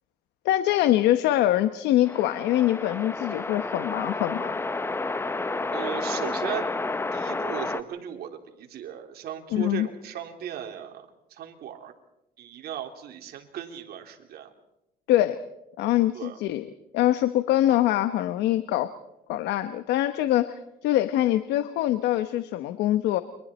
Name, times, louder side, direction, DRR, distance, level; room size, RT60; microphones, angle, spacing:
voice 1, 0.4-4.5 9.5-9.9 15.1-15.4 15.8-16.7 16.9-18.9 19.3-23.2, left 13 dB, 85° left, 11 dB, 1.0 m, -24 dB
sound 1, 2.1-7.8, left 3 dB, 15° left, 0.8 m, -30 dB
voice 2, 5.7-6.7 7.1-11.9 12.4-14.5 16.1-16.4, right 9 dB, 70° right, 4 dB, 3.2 m, -37 dB
29.5 x 24.0 x 4.3 m, 0.85 s
cardioid pair, 110°, 17 cm